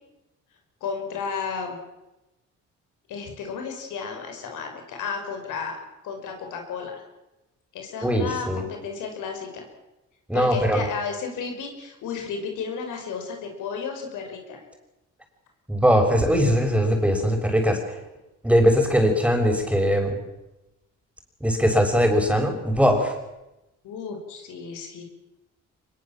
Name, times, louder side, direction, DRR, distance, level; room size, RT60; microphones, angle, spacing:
voice 1, 0.8-1.8 3.1-5.8 6.0-7.0 7.7-9.7 10.3-14.6 23.8-25.0, left 5 dB, 85° left, 4 dB, 5.9 m, -33 dB
voice 2, 8.0-8.6 10.3-10.9 15.7-18.0 18.4-20.2 21.4-23.1, equal, 5° right, 3 dB, 6.6 m, -20 dB
24.5 x 22.0 x 7.6 m, 0.98 s
cardioid pair, 90°, 30 cm